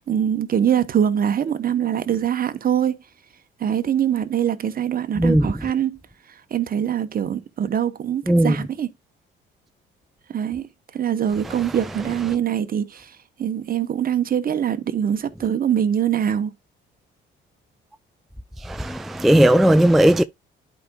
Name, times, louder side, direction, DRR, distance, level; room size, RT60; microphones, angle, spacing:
voice 1, 0.0-3.0 3.6-6.0 6.5-8.9 10.3-10.7 10.9-13.1 13.4-16.5, right 9 dB, 45° right, 1.0 m, -23 dB
voice 2, 5.2-5.5 8.3-8.6 18.6-20.2, right 1 dB, ahead, 0.3 m, -16 dB
11.0 x 4.8 x 2.3 m
cardioid pair, 90°, 20 cm